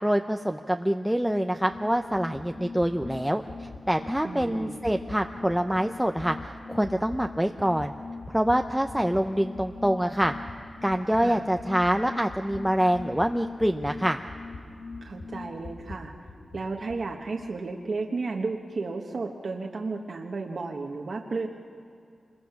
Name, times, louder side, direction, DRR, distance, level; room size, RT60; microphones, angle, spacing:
voice 1, 0.0-7.9 8.3-10.3 10.8-14.2, equal, 5° right, 4 dB, 0.6 m, -26 dB
sound 1, 1.2-9.3 9.5-17.0, left 2 dB, 85° left, 2.6 m, -46 dB
sound 2, 1.2-15.7, left 3 dB, 70° left, 1.6 m, -42 dB
voice 2, 4.2-4.7 11.1-11.4 15.0-16.1 16.5-21.5, right 3 dB, 60° right, 1 dB, 1.3 m, -33 dB
27.0 x 21.5 x 5.9 m, 2.5 s
wide cardioid pair, 105°, 0 cm